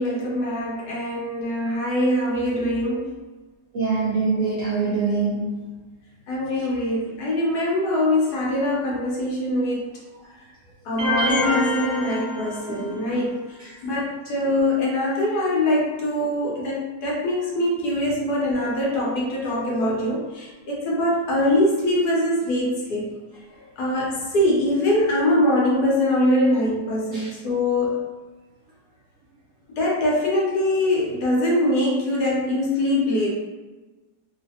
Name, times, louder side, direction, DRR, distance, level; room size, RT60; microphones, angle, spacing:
voice 1, 0.0-3.2 6.3-9.9 10.8-23.1 23.8-28.0 29.8-33.3, left 1 dB, 70° left, -5 dB, 1.2 m, -23 dB
voice 2, 3.7-5.7 12.7-13.2 13.6-13.7 27.1-27.3, right 4 dB, 75° right, -6 dB, 0.7 m, -25 dB
sound 1, 11.0-13.1, left 1 dB, 35° right, 0.4 m, -25 dB
3.1 x 2.1 x 2.7 m, 1.2 s
omnidirectional pair, 1.9 m